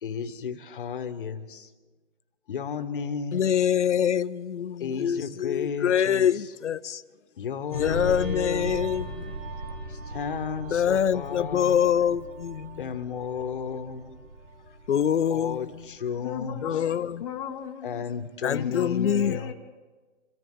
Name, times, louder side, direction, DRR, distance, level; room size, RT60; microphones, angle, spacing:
voice 1, 0.0-1.7 2.5-3.5 4.8-6.5 7.4-8.8 9.9-11.8 12.8-14.3 15.3-16.8 17.8-19.5, left 6 dB, 45° left, 1.2 m, -33 dB
voice 2, 3.3-7.0 7.7-9.4 10.7-12.8 14.9-15.7 16.6-17.2 18.4-19.4, left 9 dB, 65° left, 0.7 m, -25 dB
sound 1, 7.7-16.8 17.1-17.4, right 1 dB, 85° right, 4.5 m, -38 dB
voice 3, 16.2-18.0 18.5-19.5, left 8 dB, 20° left, 0.9 m, -36 dB
26.0 x 14.0 x 3.8 m
hypercardioid pair, 155°, 38 cm